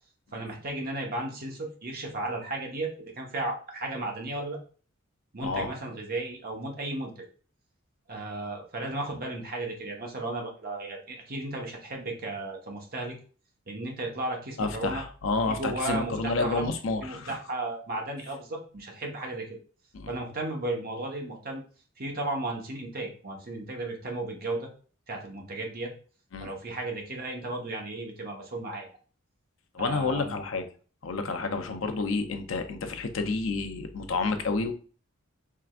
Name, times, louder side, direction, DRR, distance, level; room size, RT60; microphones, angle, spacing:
voice 1, 0.3-4.6 5.3-7.2 8.1-13.1 13.7-15.0 15.5-16.7 17.0-19.5 20.1-21.6 22.0-24.7 25.1-25.9 26.4-28.9 29.8-30.4, right 2 dB, 45° right, 1 dB, 1.0 m, -34 dB
voice 2, 5.4-5.7 14.6-17.4 19.9-20.1 26.3-26.5 29.7-30.6 31.0-34.7, left 3 dB, 65° left, 6 dB, 0.6 m, -30 dB
4.7 x 3.4 x 2.4 m, 0.40 s
head